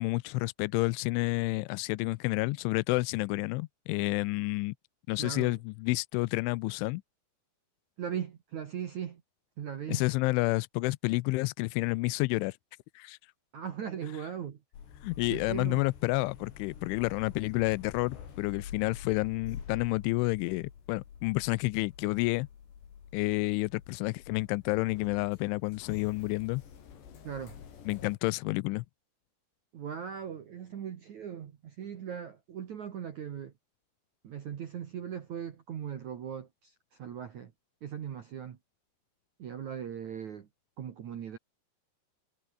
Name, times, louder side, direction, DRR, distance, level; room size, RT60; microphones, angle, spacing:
voice 1, 0.0-4.7 5.1-7.0 9.9-12.6 13.0-13.2 15.0-22.5 23.1-26.6 27.9-28.8, left 23 dB, 80° left, 2.9 m, -30 dB
voice 2, 5.2-5.6 8.0-9.2 9.6-10.0 13.5-14.6 15.3-15.9 27.2-27.6 29.7-33.5 34.2-37.5 37.8-38.6 39.4-40.5 40.8-41.4, right 8 dB, 60° right, 2.0 m, -39 dB
sound 1, 14.7-28.2, left 8 dB, 60° left, 5.7 m, -47 dB
omnidirectional pair, 5.7 m